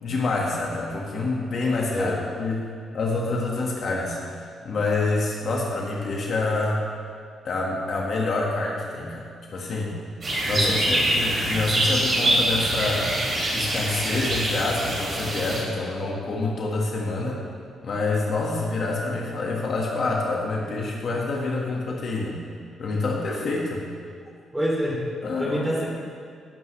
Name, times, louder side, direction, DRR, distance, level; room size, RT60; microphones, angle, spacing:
voice 1, 0.0-2.7 2.9-6.8 7.4-9.3 9.5-10.0 10.4-13.1 13.5-17.4 17.8-22.4 22.8-23.8 25.2-26.0, left 3 dB, 50° left, -2 dB, 1.8 m, -27 dB
voice 2, 1.9-2.2 10.5-11.3 24.5-25.0 25.4-26.0, equal, 5° right, -4 dB, 3.1 m, -28 dB
sound 1, 10.2-15.6, right 1 dB, 35° right, 3.5 m, -24 dB
16.5 x 11.5 x 3.4 m, 2.2 s
cardioid pair, 140°, 0 cm